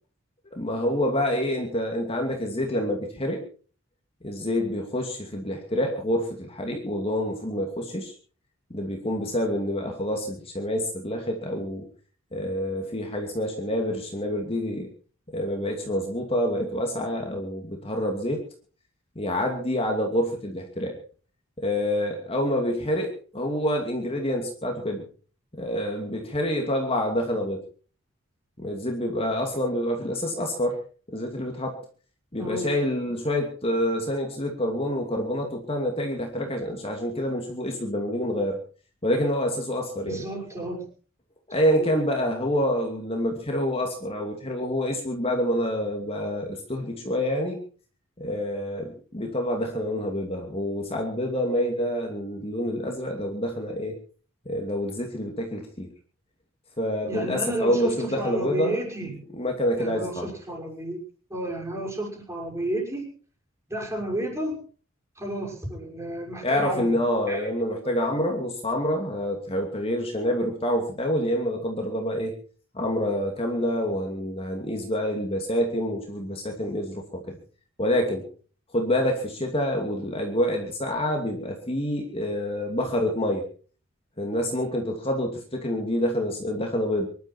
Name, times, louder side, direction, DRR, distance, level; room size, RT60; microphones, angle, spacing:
voice 1, 0.5-3.4 4.2-8.1 8.7-11.8 12.3-14.9 15.3-18.4 19.2-20.9 21.6-25.0 25.6-27.6 28.6-30.8 31.1-31.8 32.3-38.6 39.0-40.2 41.5-47.6 48.2-53.9 54.5-55.9 56.8-58.8 59.3-60.3 66.4-72.3 72.7-77.4 77.8-78.2 78.7-83.4 84.2-87.1, equal, 30° left, 2 dB, 2.7 m, -27 dB
voice 2, 32.4-32.7 33.0-33.1 40.1-40.9 41.8-41.9 57.0-59.1 59.8-61.0 61.3-63.0 63.7-64.6 65.2-67.0 67.3-67.5, right 1 dB, 15° right, 0 dB, 6.1 m, -32 dB
24.5 x 12.0 x 4.6 m, 0.40 s
head